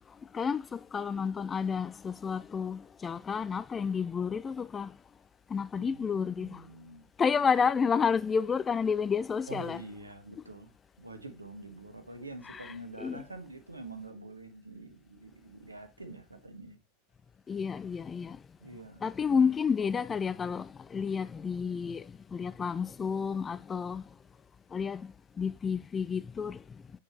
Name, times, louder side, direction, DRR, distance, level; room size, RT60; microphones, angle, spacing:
voice 1, 0.3-4.9 5.5-6.6 7.2-9.8 12.4-13.3 17.5-18.4 19.0-24.0 24.7-26.6, left 6 dB, 20° left, 0.3 m, -30 dB
voice 2, 5.8-7.1 9.5-10.7 11.0-16.8 18.6-19.0, right 2 dB, 80° right, 1.5 m, -46 dB
8.2 x 6.6 x 3.1 m
figure-of-eight pair, 90°, 0 cm